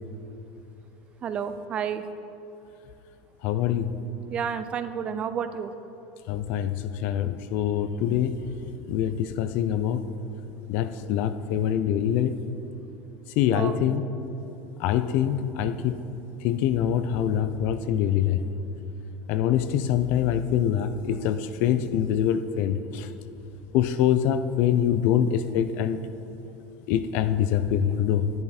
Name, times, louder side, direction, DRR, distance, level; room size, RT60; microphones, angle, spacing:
voice 1, 1.2-2.1 4.3-5.7 13.5-14.0, right 7 dB, 30° right, 11 dB, 0.5 m, -31 dB
voice 2, 3.4-3.9 6.3-8.5 8.9-10.1 10.7-12.4 13.4-14.0 14.8-16.0 16.4-18.4 19.3-23.1 23.7-26.0 26.9-28.3, left 9 dB, 55° left, 12 dB, 0.5 m, -24 dB
11.0 x 10.5 x 4.3 m, 2.9 s
supercardioid pair, 145°, 4 cm